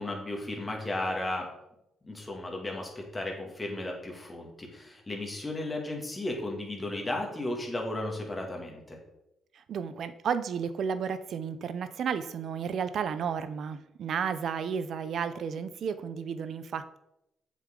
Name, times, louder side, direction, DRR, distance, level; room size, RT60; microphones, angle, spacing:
voice 1, 0.0-1.5 2.0-9.0, left 1 dB, 20° left, 0 dB, 2.2 m, -34 dB
voice 2, 9.5-17.0, right 7 dB, 65° right, 13 dB, 0.6 m, -32 dB
7.5 x 6.3 x 3.8 m, 0.86 s
cardioid pair, 90°, 0 cm